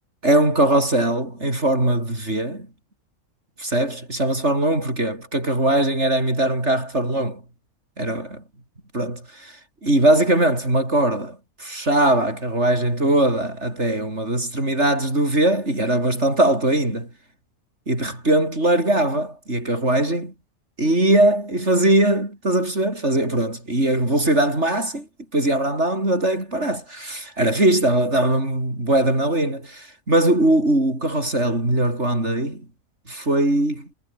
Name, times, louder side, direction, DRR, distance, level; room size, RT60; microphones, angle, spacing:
voice 1, 0.2-2.7 3.6-7.4 8.0-8.4 8.9-9.6 9.8-17.1 17.9-20.3 20.8-25.1 25.3-32.6 33.1-33.9, right 1 dB, 50° right, 8.0 m, -21 dB
omnidirectional pair, 1.5 m